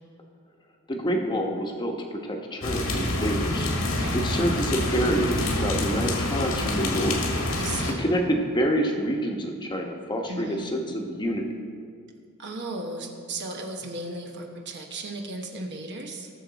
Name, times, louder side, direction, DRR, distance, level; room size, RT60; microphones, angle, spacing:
voice 1, 0.9-3.7 4.1-7.2 8.0-11.4, equal, 20° left, 2 dB, 1.1 m, -27 dB
sound 1, 2.6-7.9, left 1 dB, 80° left, 1.7 m, -27 dB
voice 2, 7.5-8.1 10.3-10.6 12.4-16.3, right 2 dB, 55° right, 2 dB, 1.2 m, -35 dB
18.0 x 6.9 x 4.0 m, 2.2 s
head